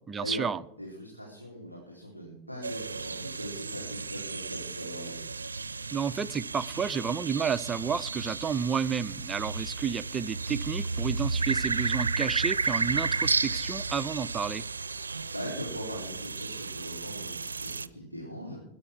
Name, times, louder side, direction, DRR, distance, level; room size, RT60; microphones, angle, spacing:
voice 1, 0.1-0.6 5.9-14.6, right 6 dB, 20° right, 0.6 m, -31 dB
voice 2, 0.7-5.2 15.3-18.6, equal, 90° left, 4.3 m, -40 dB
sound 1, 2.6-17.9, right 4 dB, 75° right, 0.6 m, -33 dB
21.0 x 10.5 x 4.6 m
figure-of-eight pair, 90°, 0 cm